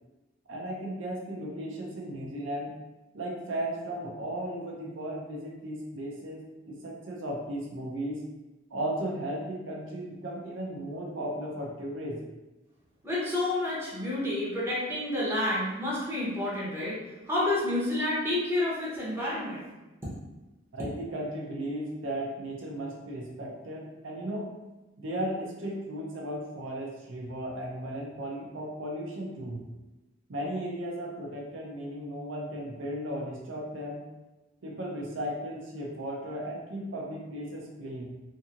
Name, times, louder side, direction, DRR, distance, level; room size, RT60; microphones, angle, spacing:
voice 1, 0.5-2.7 3.1-8.2 8.7-12.2 20.7-24.5 25.0-29.6 30.3-34.0 34.6-38.1, right 1 dB, 70° right, -2 dB, 0.6 m, -35 dB
voice 2, 13.0-17.0 17.2-19.6, left 1 dB, 15° right, -7 dB, 0.8 m, -29 dB
2.9 x 2.7 x 2.4 m, 1.1 s
head